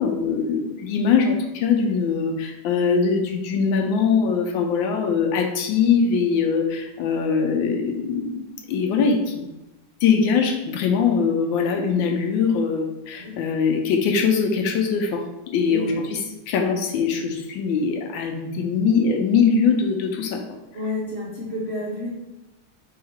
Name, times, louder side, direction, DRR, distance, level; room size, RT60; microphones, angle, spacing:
voice 1, 0.0-8.4 8.7-9.4 10.0-15.2 15.5-15.9 16.5-20.4, left 5 dB, 75° left, 3 dB, 1.3 m, -22 dB
voice 2, 15.7-16.0 20.7-22.1, left 2 dB, 75° right, -7 dB, 0.6 m, -30 dB
3.7 x 2.8 x 4.2 m, 0.94 s
omnidirectional pair, 2.3 m